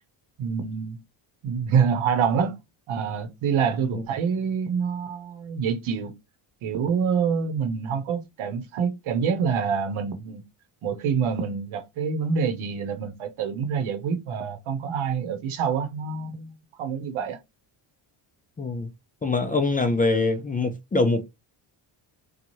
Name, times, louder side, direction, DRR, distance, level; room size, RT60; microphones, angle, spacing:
voice 1, 0.4-1.0 1.4-2.6 2.9-6.1 6.6-10.4 10.8-17.4, right 6 dB, 80° right, 0.9 m, -26 dB
voice 2, 18.6-18.9 19.2-21.3, left 3 dB, 20° left, 0.4 m, -24 dB
3.0 x 2.3 x 2.6 m
cardioid pair, 95°, 48 cm